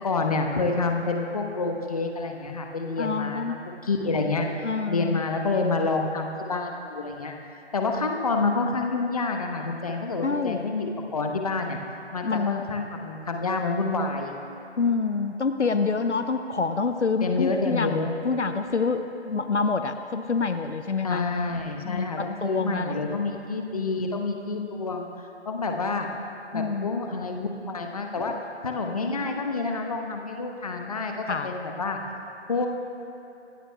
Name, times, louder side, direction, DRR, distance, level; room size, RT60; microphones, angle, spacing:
voice 1, 0.0-4.5 4.9-11.8 12.1-14.3 17.2-18.1 21.0-25.1 25.4-26.1 26.5-28.3 28.6-31.1 31.4-32.0 32.5-32.7, left 3 dB, 30° left, 3 dB, 1.0 m, -28 dB
voice 2, 3.0-3.6 4.6-5.2 10.2-10.7 12.2-12.6 14.8-18.0 18.2-21.2 21.8-23.2 26.5-26.9 31.2-31.5, left 4 dB, 75° left, 8 dB, 0.8 m, -27 dB
25.0 x 13.5 x 2.2 m, 2.9 s
figure-of-eight pair, 155°, 35 cm